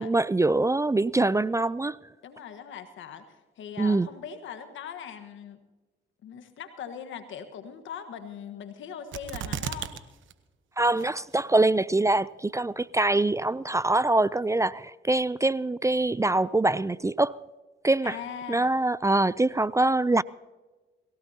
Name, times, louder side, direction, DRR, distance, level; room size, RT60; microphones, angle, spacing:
voice 1, 0.0-2.0 3.8-4.1 10.8-17.3 17.8-18.2 18.5-20.2, right 2 dB, 15° right, 0.4 m, -24 dB
voice 2, 2.2-5.6 6.2-9.9 18.0-18.7, left 8 dB, 80° left, 1.4 m, -40 dB
sound 1, 9.1-10.0 10.3-10.4 11.0-11.4 12.0-12.1, right 9 dB, 75° right, 1.0 m, -34 dB
22.0 x 16.5 x 2.8 m
supercardioid pair, 55°, 20 cm